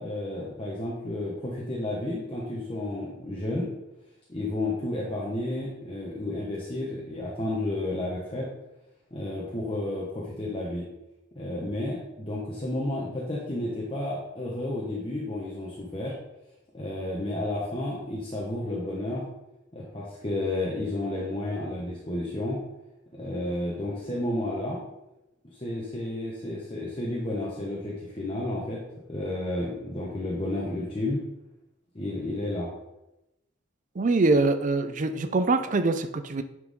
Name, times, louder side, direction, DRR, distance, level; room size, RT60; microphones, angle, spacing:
voice 1, 0.0-3.7 4.3-8.5 9.1-10.9 11.4-16.1 16.7-19.3 19.7-22.6 23.1-24.8 25.5-28.8 29.1-31.2 31.9-32.7, left 1 dB, 30° left, -5 dB, 1.2 m, -31 dB
voice 2, 34.0-36.4, right 3 dB, 40° right, 10 dB, 0.5 m, -24 dB
9.8 x 4.7 x 3.7 m, 0.92 s
head